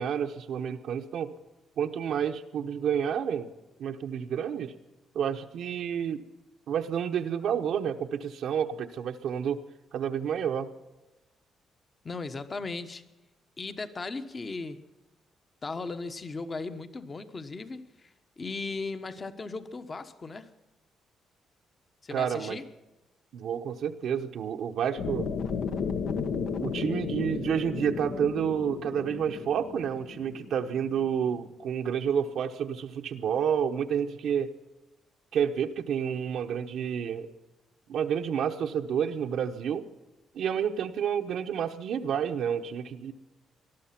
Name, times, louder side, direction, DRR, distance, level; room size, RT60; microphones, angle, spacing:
voice 1, 0.0-1.3 1.8-3.5 3.8-4.7 5.1-6.2 6.7-9.6 9.9-10.7 22.1-22.6 23.3-25.3 26.6-34.5 35.3-37.3 37.9-39.8 40.3-43.1, right 8 dB, 75° right, 4 dB, 1.0 m, -29 dB
voice 2, 12.0-13.0 13.6-14.8 15.6-20.5 22.0-22.6, left 3 dB, 35° left, 10 dB, 1.2 m, -37 dB
sound 1, 25.0-31.1, left 6 dB, 75° left, 1.3 m, -34 dB
19.5 x 12.5 x 5.9 m, 1.0 s
cardioid pair, 90°, 0 cm